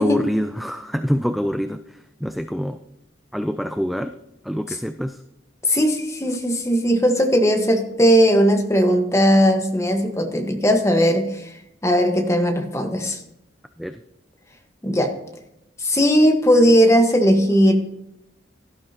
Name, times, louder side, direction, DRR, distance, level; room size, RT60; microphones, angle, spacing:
voice 1, 0.0-2.8 3.3-4.1 4.4-5.2 13.8-14.0, equal, ahead, 8 dB, 0.3 m, -25 dB
voice 2, 5.6-11.5 11.8-13.2 14.8-15.1 15.8-17.7, equal, 15° left, 3 dB, 1.3 m, -18 dB
16.5 x 11.0 x 2.9 m, 0.84 s
head